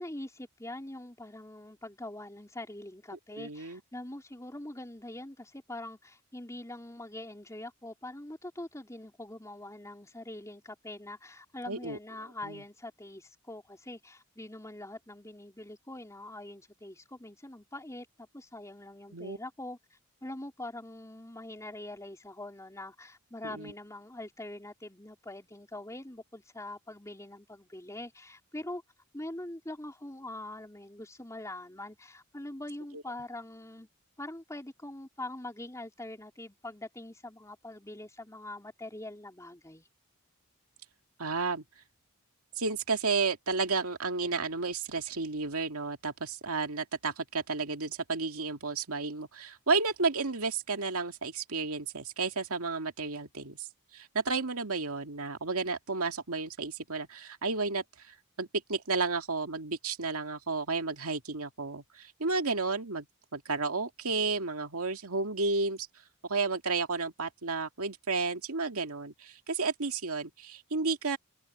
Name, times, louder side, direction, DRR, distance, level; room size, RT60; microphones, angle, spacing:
voice 1, 0.0-28.8 29.1-33.9 34.2-39.9, left 1 dB, 15° left, 4.1 m, -43 dB
voice 2, 3.3-3.8 11.7-12.0 12.4-12.6 19.1-19.4 23.4-23.7 32.9-33.0 41.2-41.6 42.6-63.1 63.3-65.9 66.2-71.2, right 4 dB, 75° right, 2.3 m, -32 dB
head